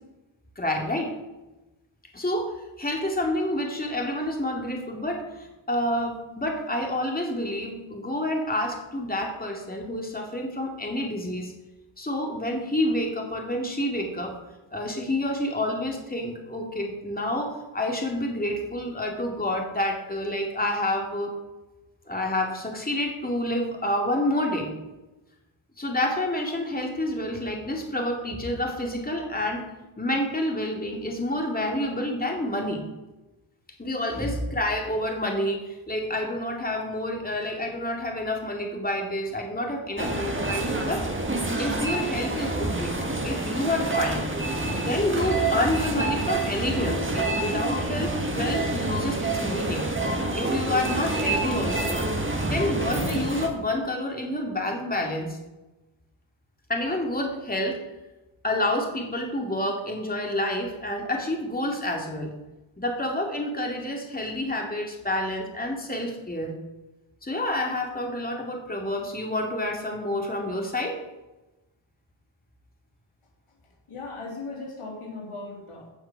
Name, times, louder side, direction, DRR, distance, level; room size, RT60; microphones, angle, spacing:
voice 1, 0.6-1.1 2.1-2.5 2.8-11.5 12.0-14.4 14.7-21.3 22.1-24.7 25.8-29.6 30.0-32.8 33.8-41.1 41.5-42.9 43.2-44.3 44.8-49.9 50.4-52.0 52.4-55.4 56.7-57.8 58.4-62.3 62.8-66.5 67.2-71.0, left 1 dB, 20° left, 1 dB, 2.5 m, -28 dB
sound 1, 40.0-53.5, right 2 dB, 25° right, 1.9 m, -27 dB
voice 2, 73.9-75.9, left 3 dB, 85° left, 0 dB, 3.0 m, -37 dB
16.5 x 5.8 x 5.9 m, 1.0 s
wide cardioid pair, 70°, 49 cm